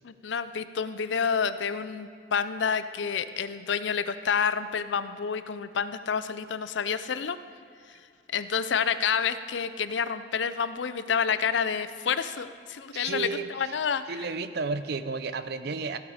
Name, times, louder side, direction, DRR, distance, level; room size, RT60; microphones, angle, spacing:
voice 1, 0.0-7.4 8.3-14.0, left 6 dB, 80° left, 13 dB, 0.5 m, -29 dB
voice 2, 12.9-13.7 14.1-16.0, right 4 dB, 60° right, 12 dB, 0.6 m, -32 dB
15.0 x 8.1 x 4.9 m, 2.4 s
head